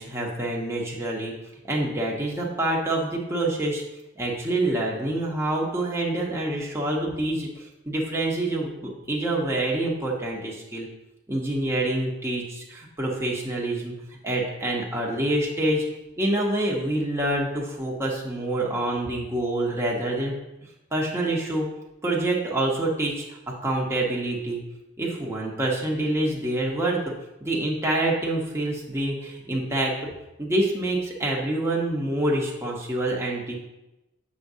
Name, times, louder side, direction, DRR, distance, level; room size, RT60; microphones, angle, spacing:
voice 1, 0.0-1.3 1.6-3.8 4.2-10.9 11.3-13.9 14.2-15.8 16.2-20.3 20.9-21.7 22.0-24.6 25.0-27.0 27.4-30.1 30.4-33.5, right 1 dB, 15° right, -3 dB, 0.9 m, -26 dB
7.2 x 6.0 x 2.7 m, 0.96 s
head